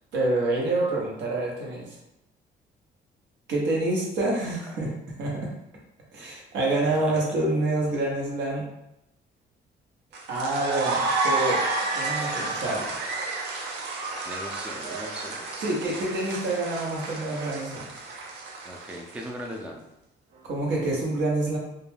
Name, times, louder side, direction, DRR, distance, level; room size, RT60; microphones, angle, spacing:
voice 1, 0.1-1.9 3.5-4.9 5.2-5.5 6.1-8.6 10.3-11.6 11.9-13.0 15.6-17.9 20.5-21.6, right 2 dB, 85° right, -3 dB, 0.9 m, -27 dB
voice 2, 6.8-7.4 14.2-15.7 18.6-19.8, equal, 5° right, 1 dB, 0.3 m, -39 dB
sound 1, 10.1-19.5, right 3 dB, 70° right, 0.5 m, -30 dB
2.3 x 2.1 x 3.2 m, 0.84 s
cardioid pair, 130°, 18 cm